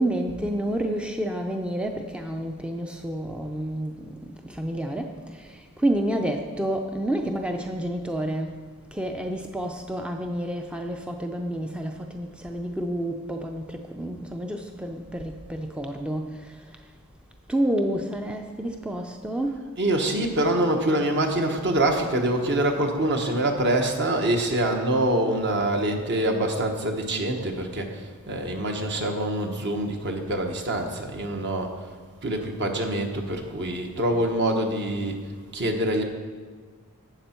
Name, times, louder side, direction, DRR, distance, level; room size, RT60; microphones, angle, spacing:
voice 1, 0.0-4.2 4.4-8.6 8.9-16.4 17.5-19.6, right 1 dB, 5° right, 4 dB, 0.4 m, -29 dB
voice 2, 19.8-31.7 32.2-35.2 35.5-36.0, right 1 dB, 55° right, 3 dB, 1.2 m, -25 dB
12.0 x 8.0 x 4.4 m, 1.5 s
head